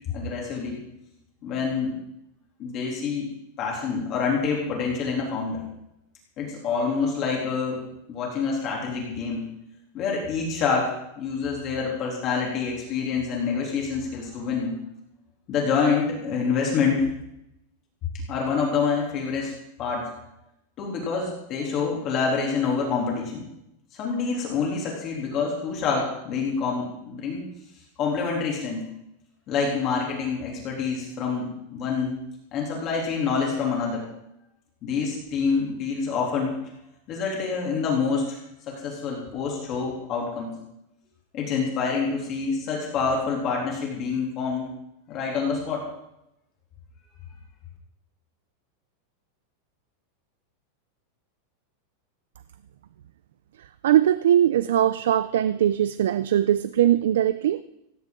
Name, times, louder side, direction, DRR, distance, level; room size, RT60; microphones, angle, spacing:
voice 1, 0.1-0.8 1.4-2.0 2.6-3.3 3.6-5.6 6.4-7.8 8.1-9.4 9.9-14.7 15.5-17.1 18.3-19.5 19.8-20.1 20.8-23.5 23.9-27.4 28.0-28.8 29.5-32.2 32.5-34.0 34.8-36.6 37.1-38.4 38.7-40.5 41.3-44.7 45.1-45.9, left 5 dB, 25° left, -1 dB, 3.3 m, -27 dB
voice 2, 53.8-57.6, right 11 dB, 85° right, 13 dB, 0.6 m, -21 dB
17.5 x 16.5 x 3.9 m, 0.84 s
supercardioid pair, 180°, 0 cm